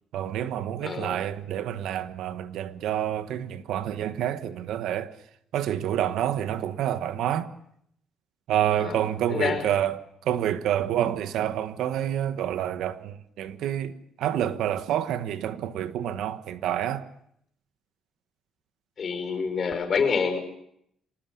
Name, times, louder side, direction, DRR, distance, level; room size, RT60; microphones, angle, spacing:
voice 1, 0.1-5.1 5.5-7.5 8.5-17.1, right 11 dB, 75° right, 1.3 m, -28 dB
voice 2, 0.8-1.2 8.8-9.0 9.3-9.7 19.0-20.4, left 5 dB, 40° left, 5.5 m, -27 dB
25.5 x 19.5 x 7.1 m
cardioid pair, 135°, 0 cm